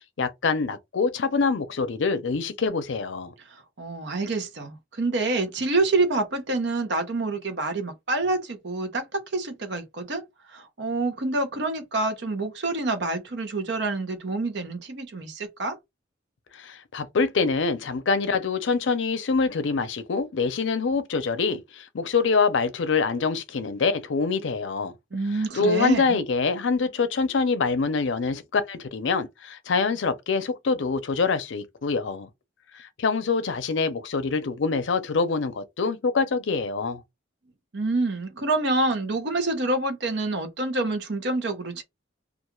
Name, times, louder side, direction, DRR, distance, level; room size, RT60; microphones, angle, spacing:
voice 1, 0.2-3.3 16.5-24.9 25.5-32.3 32.7-37.0, left 4 dB, 70° left, 0.5 m, -25 dB
voice 2, 3.5-10.2 10.5-15.8 25.1-26.2 37.7-41.8, right 2 dB, 60° right, 0.7 m, -27 dB
2.4 x 2.3 x 3.0 m
head